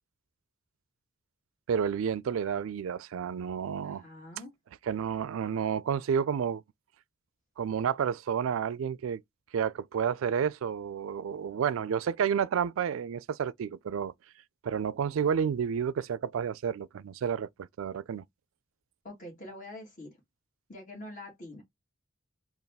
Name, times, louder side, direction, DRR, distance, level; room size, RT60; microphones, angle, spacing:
voice 1, 1.7-4.0 4.9-6.6 7.6-9.2 9.5-14.1 14.6-18.2, right 7 dB, 70° right, 0.3 m, -30 dB
voice 2, 3.8-4.5 19.0-20.1 20.7-21.6, left 1 dB, 40° left, 1.9 m, -45 dB
4.0 x 2.4 x 3.5 m
head